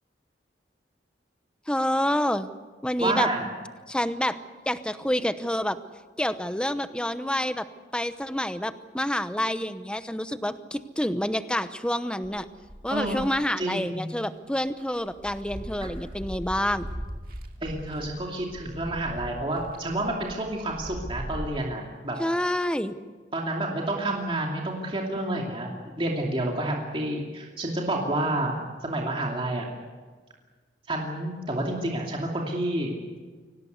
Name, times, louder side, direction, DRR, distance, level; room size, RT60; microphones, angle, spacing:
voice 1, 1.7-2.5 2.8-3.3 3.9-4.4 4.7-5.8 6.2-7.6 7.9-12.5 12.8-16.9 22.2-23.0, left 1 dB, 5° left, 11 dB, 0.9 m, -28 dB
voice 2, 3.0-3.5 12.9-13.2 13.6-14.0 15.8-15.9 17.6-22.2 23.3-29.7 30.9-33.0, right 1 dB, 30° right, -1 dB, 2.7 m, -29 dB
sound 1, 12.2-13.4 14.1-14.2 14.6-21.4, equal, 55° right, 2.3 m, -39 dB
25.0 x 18.0 x 8.2 m, 1.4 s
head